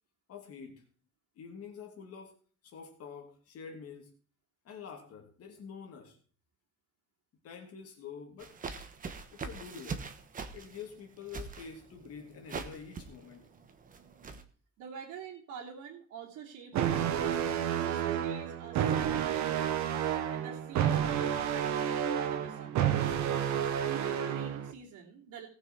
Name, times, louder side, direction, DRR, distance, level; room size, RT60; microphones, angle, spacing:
voice 1, 0.3-0.8 1.4-2.4 2.6-4.1 4.6-6.2 7.4-8.5 9.3-10.1 10.5-13.4, left 6 dB, 50° left, 2 dB, 2.8 m, -47 dB
sound 1, 8.4-14.4, right 5 dB, 25° right, 1.2 m, -43 dB
voice 2, 14.8-19.9 20.3-22.8 23.8-25.5, right 7 dB, 85° right, -6 dB, 2.9 m, -47 dB
sound 2, 16.7-24.7, right 9 dB, 70° right, 1.2 m, -30 dB
18.5 x 6.3 x 4.6 m, 0.42 s
cardioid pair, 175°, 30 cm